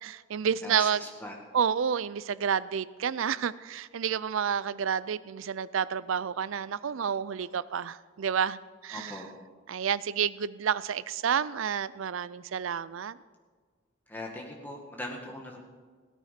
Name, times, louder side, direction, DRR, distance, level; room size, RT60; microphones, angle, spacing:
voice 1, 0.0-1.0 1.5-9.2 9.7-13.2, right 7 dB, 80° right, 18 dB, 0.4 m, -30 dB
voice 2, 0.6-1.4 8.9-9.3 14.1-15.6, left 1 dB, 10° left, 0 dB, 1.9 m, -40 dB
17.0 x 9.1 x 5.8 m, 1.5 s
head